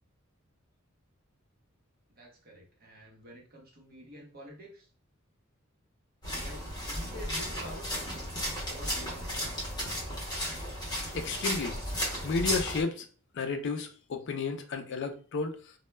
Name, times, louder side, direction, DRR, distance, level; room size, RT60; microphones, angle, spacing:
voice 1, 2.1-4.9 6.3-8.1 8.7-9.4, equal, 45° right, 0.8 m, -48 dB
sound 1, 6.2-12.8, equal, 20° left, 0.7 m, -34 dB
voice 2, 11.1-11.8 12.2-13.1 13.3-15.7, left 4 dB, 60° left, 0.4 m, -32 dB
2.1 x 2.0 x 3.2 m
head